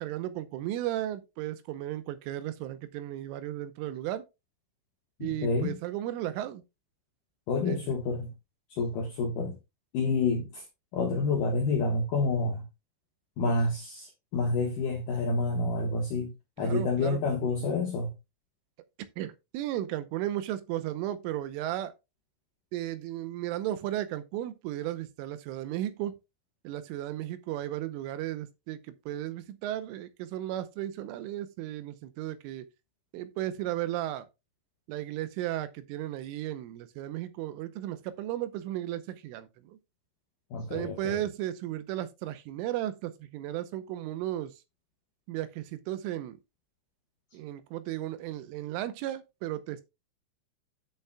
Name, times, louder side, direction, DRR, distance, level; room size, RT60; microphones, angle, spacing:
voice 1, 0.0-4.2 5.2-6.6 7.7-7.9 16.6-17.2 19.2-21.9 22.7-26.2 26.6-32.7 33.1-34.2 34.9-39.8 40.7-44.5 45.3-46.4 47.3-49.8, right 13 dB, 85° right, 3.3 m, -35 dB
voice 2, 5.2-5.8 7.5-8.3 8.7-9.6 9.9-10.6 10.9-12.6 13.4-16.3 16.6-18.1 40.5-41.2, left 3 dB, 75° left, 2.0 m, -28 dB
10.0 x 8.2 x 2.2 m
omnidirectional pair, 5.6 m